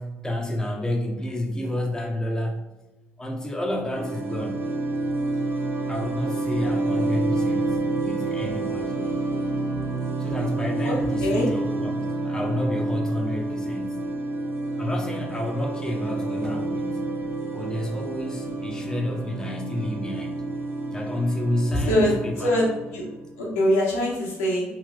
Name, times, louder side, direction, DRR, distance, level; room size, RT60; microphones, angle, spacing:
voice 1, 0.0-2.6 3.2-4.7 5.9-9.0 10.2-12.0 12.2-14.1 14.8-17.0 17.5-20.4 20.9-22.5, left 1 dB, 10° left, 0 dB, 0.7 m, -30 dB
sound 1, 3.9-23.5, right 2 dB, 35° right, 0.8 m, -29 dB
voice 2, 10.8-11.5 21.9-23.0 23.4-24.6, equal, 80° left, -5 dB, 0.9 m, -23 dB
3.2 x 2.8 x 2.4 m, 1.0 s
hypercardioid pair, 50°, 7 cm